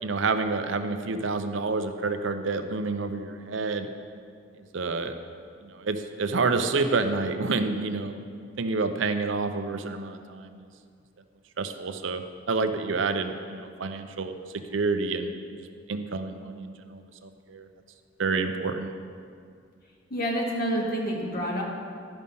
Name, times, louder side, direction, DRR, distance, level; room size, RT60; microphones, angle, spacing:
voice 1, 0.0-3.9 4.7-5.2 5.6-8.2 8.6-10.6 11.6-14.3 14.7-15.3 15.9-17.7 18.2-18.9, right 4 dB, 70° right, 8 dB, 0.6 m, -28 dB
voice 2, 20.1-21.6, equal, 50° left, -1 dB, 1.5 m, -28 dB
12.5 x 5.3 x 5.4 m, 2.3 s
head